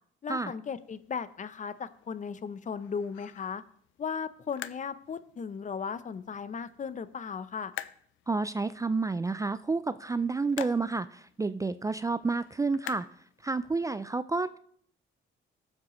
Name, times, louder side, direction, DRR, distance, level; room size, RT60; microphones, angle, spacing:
voice 1, 0.2-3.6 4.0-7.7, left 6 dB, 40° left, 15 dB, 0.6 m, -36 dB
sound 1, 0.7-13.9, left 13 dB, 80° left, 0.5 m, -49 dB
voice 2, 8.3-13.1 13.4-14.6, right 3 dB, 15° right, 13 dB, 0.3 m, -30 dB
18.5 x 7.5 x 3.1 m, 0.62 s
cardioid pair, 90°, 20 cm